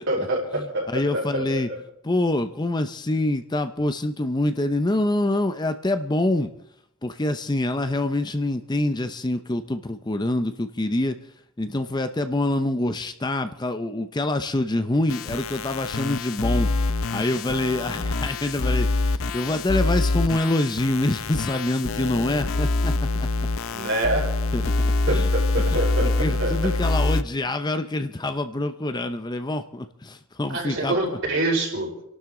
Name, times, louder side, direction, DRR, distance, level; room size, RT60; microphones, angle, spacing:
voice 1, 0.0-1.8 23.7-24.3 25.1-26.7 30.5-31.9, right 1 dB, 60° right, -1 dB, 4.6 m, -26 dB
voice 2, 0.5-1.7 2.0-6.5 7.0-23.3 24.5-25.3 25.7-31.2, left 1 dB, 20° left, 9 dB, 0.6 m, -26 dB
sound 1, 15.1-27.2, left 2 dB, 70° left, 0.6 m, -25 dB
29.5 x 12.0 x 3.8 m, 0.77 s
head